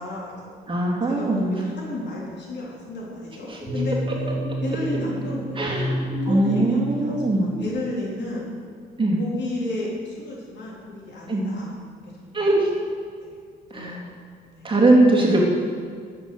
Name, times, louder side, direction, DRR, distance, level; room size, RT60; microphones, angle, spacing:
voice 1, 0.0-0.5 1.1-4.0 4.6-5.8 6.3-8.5 9.2-11.7 12.2-12.4 13.2-13.3 13.7-14.0 14.5-14.7, left 2 dB, 60° left, -5 dB, 3.9 m, -32 dB
voice 2, 0.7-1.5 3.5-3.6 5.6-6.0 6.3-7.4 9.0-9.2 11.3-11.5 12.3-12.7 13.7-14.0 14.6-15.4, right 2 dB, 25° right, -3 dB, 2.8 m, -20 dB
sound 1, 3.6-7.7, right 1 dB, 20° left, 3.2 m, -29 dB
11.5 x 7.7 x 6.9 m, 2.1 s
cardioid pair, 90°, 20 cm